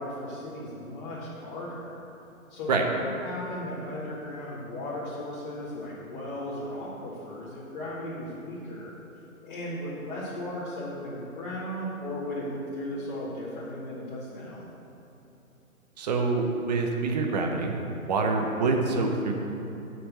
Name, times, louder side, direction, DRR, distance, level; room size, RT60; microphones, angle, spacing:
voice 1, 0.0-2.0 2.5-9.0 9.4-14.7, left 1 dB, 30° left, -10 dB, 2.1 m, -36 dB
voice 2, 16.0-17.8 18.0-19.3, right 3 dB, 30° right, 2 dB, 0.9 m, -26 dB
6.4 x 6.3 x 7.5 m, 2.9 s
figure-of-eight pair, 140°, 43 cm